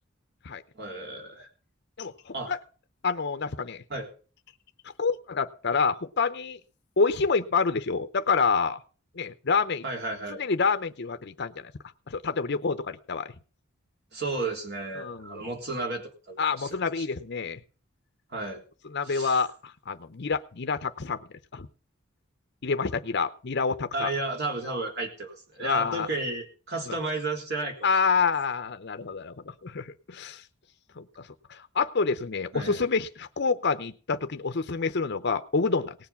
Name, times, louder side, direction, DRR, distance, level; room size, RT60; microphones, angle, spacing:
voice 1, 0.8-1.5 2.3-2.5 3.9-4.1 9.8-10.4 14.1-16.7 17.0-17.1 18.3-18.6 19.1-19.4 23.9-27.8 32.5-32.8, right 2 dB, 55° right, 2 dB, 3.5 m, -33 dB
voice 2, 2.0-2.6 3.0-3.8 5.0-6.6 7.0-8.8 9.2-9.8 10.4-11.7 12.1-13.3 15.0-15.5 16.4-17.6 18.9-21.2 21.5-21.7 22.6-24.1 25.6-26.1 26.9-27.0 27.8-30.4 31.0-35.9, left 5 dB, 55° left, 10 dB, 0.7 m, -27 dB
18.0 x 7.2 x 5.8 m, 0.38 s
head